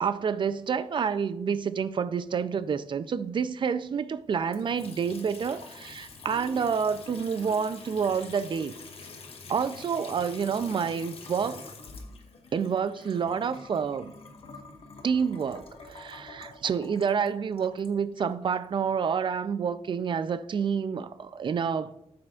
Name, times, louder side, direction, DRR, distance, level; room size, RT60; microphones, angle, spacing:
voice 1, 0.0-8.7 9.5-11.6 12.5-14.1 15.0-21.9, right 6 dB, 50° right, 0.4 m, -28 dB
Water tap faucet / Sink (filling or washing) / Trickle dribble, 4.5-18.6, left 3 dB, 60° left, 1.1 m, -46 dB
9.3 x 7.6 x 2.4 m
wide cardioid pair, 130°, 11 cm